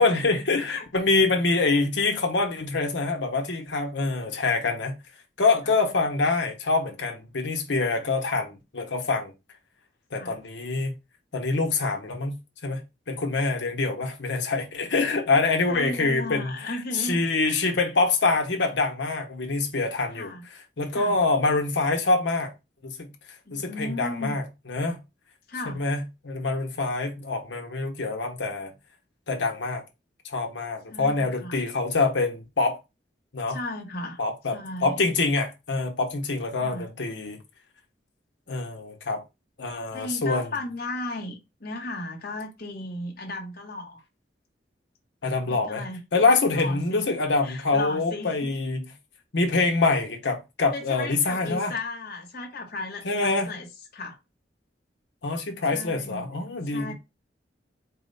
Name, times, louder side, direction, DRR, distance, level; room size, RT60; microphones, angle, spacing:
voice 1, 0.0-4.9 5.4-9.3 10.1-10.9 11.3-12.4 12.6-12.8 13.1-16.5 16.9-20.3 20.8-22.5 22.8-23.1 23.5-25.0 25.7-28.7 29.3-29.8 30.2-32.8 33.3-33.6 34.2-37.4 38.5-39.2 39.6-40.5 45.2-45.8 46.1-48.8 49.3-51.7 53.0-53.5 55.2-56.9, left 3 dB, 80° left, 1.0 m, -25 dB
voice 2, 15.3-17.7 20.1-20.4 20.9-21.2 23.4-24.4 25.5-25.8 30.9-31.6 33.5-34.2 34.5-35.1 36.6-36.9 39.9-44.0 45.5-46.0 46.5-47.1 47.4-48.6 50.7-54.2 55.7-56.3 56.7-56.9, left 2 dB, 60° left, 1.1 m, -35 dB
4.3 x 2.2 x 4.0 m
head